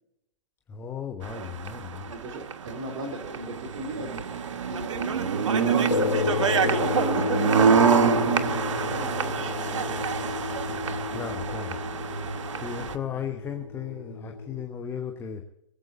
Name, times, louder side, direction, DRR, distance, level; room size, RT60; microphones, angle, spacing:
voice 1, 0.7-2.1 11.1-11.8 12.6-15.4, left 7 dB, 15° left, 5 dB, 1.0 m, -35 dB
sound 1, 1.2-12.9, right 6 dB, 75° right, 1.2 m, -26 dB
voice 2, 2.1-4.2 4.7-10.3, right 1 dB, 40° right, 4 dB, 3.0 m, -38 dB
sound 2, 5.9-14.6, left 5 dB, 90° left, 0.8 m, -31 dB
23.5 x 8.0 x 4.1 m, 0.87 s
hypercardioid pair, 140°, 16 cm